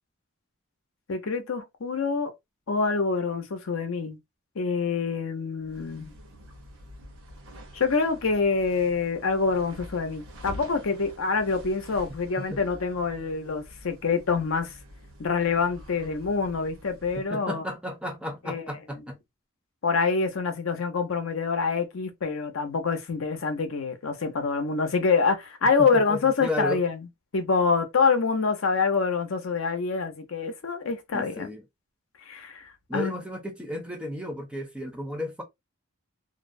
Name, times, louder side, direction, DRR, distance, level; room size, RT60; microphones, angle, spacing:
voice 1, 1.1-2.3 2.7-4.2 4.6-6.1 7.7-14.7 15.2-17.6 18.5-18.6 19.8-27.0 27.3-31.5 32.3-33.1, left 4 dB, 70° left, 0.6 m, -26 dB
sound 1, 5.6-17.3, equal, 90° right, 0.9 m, -47 dB
voice 2, 17.3-19.2 25.8-26.8 31.1-31.6 32.9-35.4, left 1 dB, 5° right, 0.5 m, -33 dB
2.6 x 2.0 x 2.5 m
head